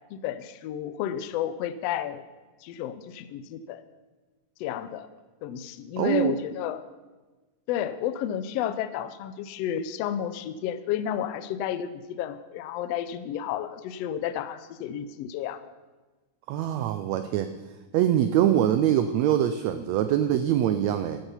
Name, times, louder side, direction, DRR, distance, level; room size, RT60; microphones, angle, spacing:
voice 1, 0.1-2.2 2.6-3.8 4.6-5.1 5.4-6.8 7.7-15.6, left 10 dB, 85° left, 13 dB, 1.4 m, -31 dB
voice 2, 6.0-6.4 16.5-17.5 17.9-21.2, right 11 dB, 80° right, 10 dB, 1.6 m, -23 dB
15.5 x 9.1 x 5.6 m, 1.2 s
omnidirectional pair, 3.7 m